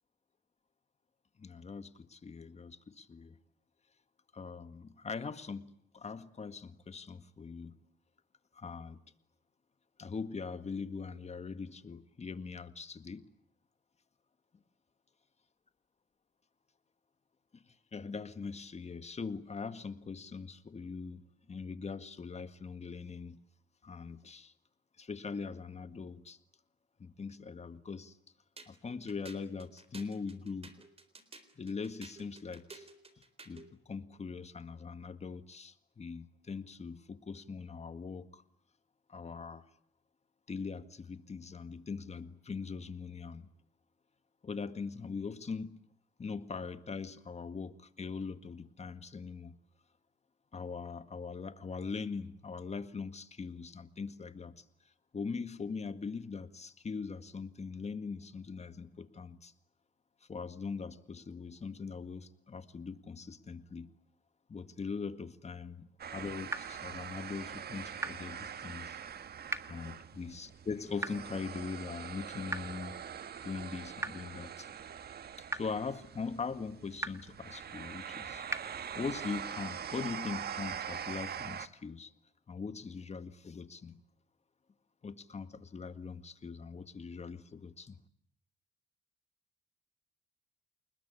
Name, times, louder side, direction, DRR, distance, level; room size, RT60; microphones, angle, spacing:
voice 1, 1.4-3.4 4.3-7.8 8.5-9.0 10.0-13.3 17.5-17.6 17.9-21.2 21.5-23.4 23.8-24.5 25.0-26.4 27.0-28.2 28.7-30.7 31.6-32.9 33.5-38.4 39.1-39.6 40.5-43.5 44.4-45.8 46.2-49.5 50.5-54.6 55.1-59.5 60.3-63.9 64.5-69.0 69.7-73.0 73.4-74.7 75.5-78.5 79.0-82.1 82.5-84.0 85.0-88.0, left 5 dB, 35° left, 11 dB, 1.9 m, -41 dB
sound 1, 28.6-33.7, right 3 dB, 30° right, 4.0 m, -53 dB
sound 2, 66.0-81.7, right 8 dB, 55° right, 1.5 m, -43 dB
sound 3, 66.5-66.6 68.0-68.1 69.5-69.6 71.0-71.1 72.5-72.6 74.0-74.1 75.5-75.6 77.0-77.1 78.5-78.6, right 1 dB, 15° right, 1.7 m, -34 dB
28.5 x 20.5 x 9.8 m, 0.65 s
cardioid pair, 90°, 20 cm